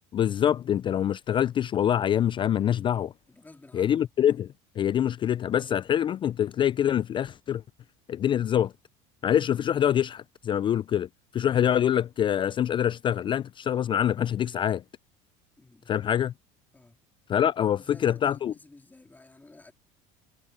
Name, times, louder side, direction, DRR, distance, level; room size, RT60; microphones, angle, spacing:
voice 1, 0.1-3.1 3.7-4.5 4.8-7.6 8.1-8.7 9.2-11.1 11.3-14.8 15.9-16.3 17.3-18.5, left 10 dB, 30° left, 0.3 m, -25 dB
voice 2, 3.3-4.0 15.6-16.0 16.7-17.0 17.7-19.7, left 2 dB, 10° left, 2.6 m, -52 dB
supercardioid pair, 110°, 16 cm